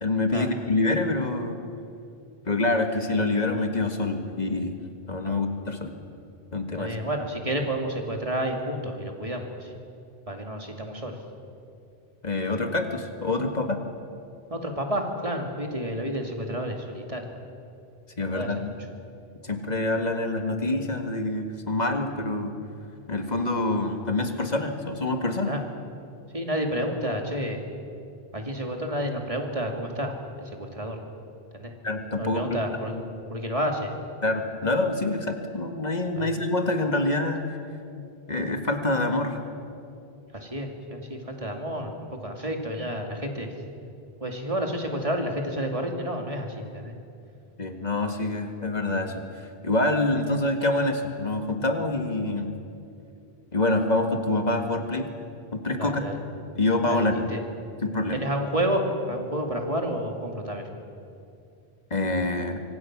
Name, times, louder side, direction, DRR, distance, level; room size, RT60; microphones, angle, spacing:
voice 1, 0.0-1.6 2.5-4.7 5.1-5.9 6.5-7.0 12.2-13.8 18.2-18.7 19.4-22.5 23.1-25.6 31.8-32.6 32.9-33.0 34.2-37.5 38.3-39.4 47.6-49.2 49.6-52.5 53.5-55.1 55.5-56.1 56.6-57.3 57.8-58.2 61.9-62.6, left 2 dB, 40° left, 5 dB, 2.0 m, -26 dB
voice 2, 6.7-9.7 10.3-11.1 14.5-17.2 18.3-18.5 25.4-25.6 26.3-27.6 28.3-30.1 30.6-31.0 31.5-31.7 32.2-32.9 33.3-33.9 36.2-36.3 40.3-41.9 42.2-43.5 44.2-46.9 55.8-56.2 56.9-57.4 58.1-58.8 59.1-60.6, equal, 30° right, 2 dB, 2.6 m, -30 dB
25.0 x 24.5 x 6.1 m, 2.5 s
omnidirectional pair, 1.1 m